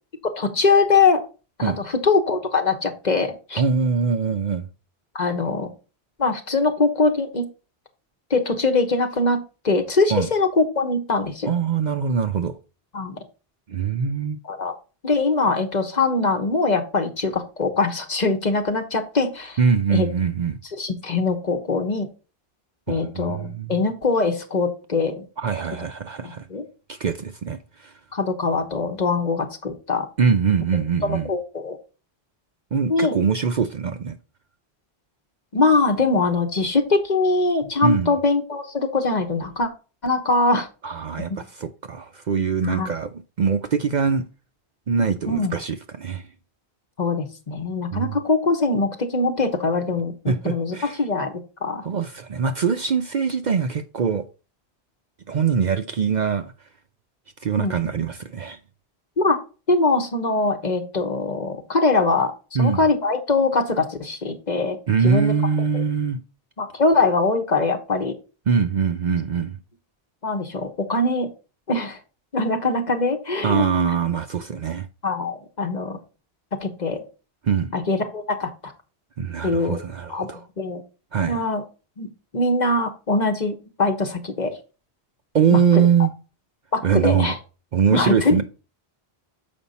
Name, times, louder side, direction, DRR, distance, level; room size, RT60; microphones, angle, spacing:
voice 1, 0.4-1.2 1.6-3.6 5.1-5.7 6.2-7.5 8.3-11.5 12.9-13.2 14.5-14.7 15.0-19.6 19.9-20.1 20.8-22.1 22.9-25.2 26.2-26.7 28.1-30.1 31.0-31.8 32.9-33.2 35.5-39.7 40.0-40.7 41.3-41.4 42.6-42.9 45.3-45.5 47.0-51.8 57.6-57.7 59.2-59.4 59.7-62.3 62.6-64.8 65.0-65.3 65.7-65.8 66.6-68.1 70.2-71.3 71.7-72.0 72.3-73.7 75.0-76.0 76.6-77.0 77.7-78.7 79.4-79.8 80.1-80.8 81.3-81.6 82.0-82.1 82.3-84.5 85.5-85.6 86.7-87.4 87.9-88.4, left 3 dB, 45° left, 1.1 m, -22 dB
voice 2, 3.6-4.7 10.1-10.3 11.5-12.6 13.7-14.4 19.6-20.6 22.9-23.8 25.4-26.5 26.9-27.9 30.2-31.3 32.7-34.2 37.8-38.1 40.8-44.2 44.9-46.3 47.9-48.1 50.3-51.0 51.8-54.3 55.3-56.5 57.4-58.6 62.5-62.8 64.9-66.2 68.5-69.6 73.4-74.9 77.4-77.7 79.2-80.4 81.1-81.4 85.3-86.1 86.8-87.3 87.7-88.4, right 6 dB, 50° right, 0.6 m, -22 dB
7.1 x 5.1 x 4.1 m
omnidirectional pair, 1.1 m